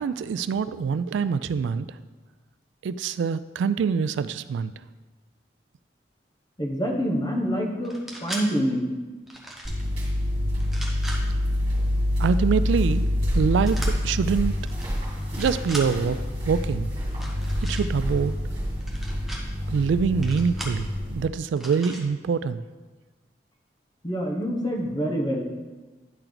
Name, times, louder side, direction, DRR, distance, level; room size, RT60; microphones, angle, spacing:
voice 1, 0.0-1.9 2.8-4.7 12.2-13.1 13.3-14.6 15.4-16.2 16.5-16.9 17.6-18.3 19.7-22.7, right 6 dB, 90° right, 14 dB, 0.3 m, -25 dB
voice 2, 6.6-8.9 24.0-25.4, equal, 25° left, 0 dB, 1.0 m, -26 dB
sound 1, 7.8-8.4 9.3-9.8 10.6-11.2 13.7-13.9 14.6-14.9 15.2-15.9 17.1-17.8 18.8-19.4 20.2-20.8 21.6-22.0, right 1 dB, ahead, 0.9 m, -37 dB
sound 2, 9.6-21.2, left 1 dB, 30° right, 2.4 m, -27 dB
10.5 x 4.4 x 3.9 m, 1.3 s
head